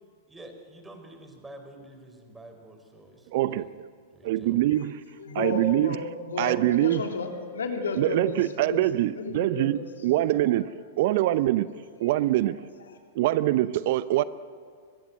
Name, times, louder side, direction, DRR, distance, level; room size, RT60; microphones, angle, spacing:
voice 1, 0.3-3.6 4.1-4.7, right 1 dB, 10° right, 5 dB, 4.8 m, -48 dB
voice 2, 3.3-3.7 4.2-5.0 5.3-6.0 6.4-7.0 8.0-10.7 11.0-12.6 13.1-14.2, right 14 dB, 55° right, 16 dB, 0.7 m, -24 dB
voice 3, 5.2-8.4 8.6-9.8, left 3 dB, 75° left, 3 dB, 3.3 m, -32 dB
24.0 x 22.0 x 7.7 m, 2.1 s
figure-of-eight pair, 100°, 0 cm